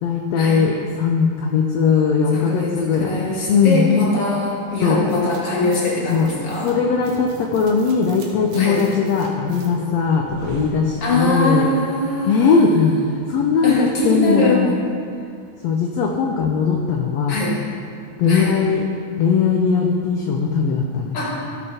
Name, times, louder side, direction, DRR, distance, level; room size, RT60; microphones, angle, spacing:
voice 1, 0.0-3.8 4.8-5.0 6.1-6.3 6.6-11.7 12.3-13.0 13.3-14.8 15.6-17.4 18.2-18.8 19.2-21.2, left 5 dB, 75° left, 1 dB, 1.6 m, -19 dB
voice 2, 2.3-6.7 8.5-8.8 11.0-12.6 13.6-14.7 17.3-17.6 18.3-18.5 21.1-21.4, left 1 dB, 45° left, -5 dB, 2.9 m, -22 dB
sound 1, 5.1-11.4, right 4 dB, 70° right, 2.5 m, -39 dB
15.0 x 6.8 x 4.3 m, 2.3 s
omnidirectional pair, 3.7 m